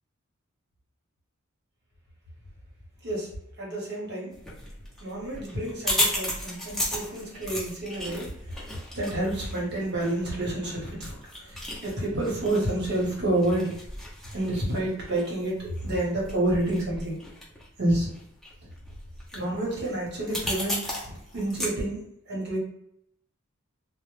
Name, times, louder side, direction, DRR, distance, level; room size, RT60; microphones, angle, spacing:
voice 1, 3.6-4.4 5.0-8.7 8.9-13.7 14.3-17.2 17.8-18.1 19.3-22.6, right 1 dB, 55° right, -3 dB, 1.0 m, -29 dB
sound 1, 4.3-21.7, equal, ahead, 0.6 m, -35 dB
2.1 x 2.0 x 3.1 m, 0.76 s
head